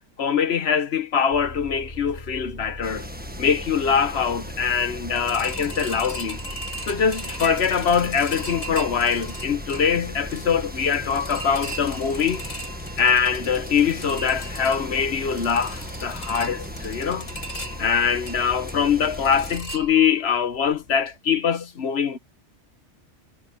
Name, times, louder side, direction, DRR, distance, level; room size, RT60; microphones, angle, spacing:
voice 1, 0.2-3.1 3.4-6.4 6.9-12.4 13.0-17.3 17.8-22.2, left 7 dB, 60° left, 1.3 m, -23 dB
sound 1, 1.3-19.7, left 1 dB, 35° left, 4.2 m, -39 dB
sound 2, 2.8-19.6, right 1 dB, 5° right, 1.5 m, -39 dB
sound 3, 5.2-20.3 20.7-20.8 21.1-21.2, equal, 85° left, 5.9 m, -38 dB
omnidirectional pair, 1.3 m